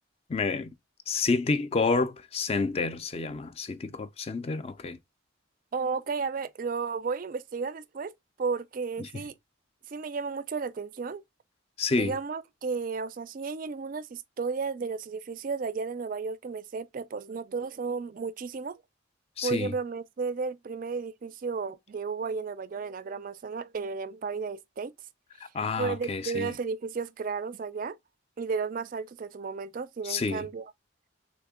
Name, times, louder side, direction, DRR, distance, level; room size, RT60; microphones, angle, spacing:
voice 1, 0.3-0.7 1.1-5.0 9.0-9.2 11.8-12.2 19.4-19.7 25.5-26.6 30.0-30.5, left 4 dB, 30° left, 0.4 m, -29 dB
voice 2, 5.7-8.1 8.4-9.4 9.9-11.2 11.9-18.8 19.4-24.9 25.8-28.0 28.4-30.7, right 5 dB, 45° right, 0.3 m, -33 dB
3.5 x 3.4 x 3.6 m
head